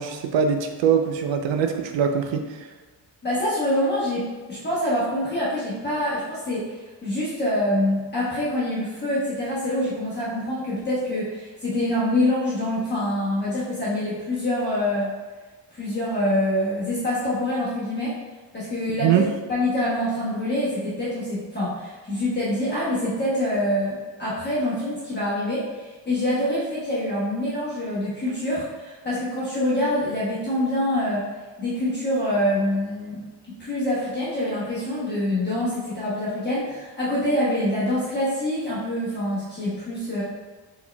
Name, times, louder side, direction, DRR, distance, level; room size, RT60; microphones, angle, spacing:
voice 1, 0.0-2.7 19.0-19.3, right 7 dB, 85° right, 6 dB, 0.6 m, -22 dB
voice 2, 3.2-15.1 15.7-18.2 18.5-19.1 19.5-31.2 31.6-40.2, left 1 dB, 25° left, -9 dB, 1.0 m, -25 dB
4.4 x 4.3 x 2.2 m, 1.3 s
wide cardioid pair, 175°, 44 cm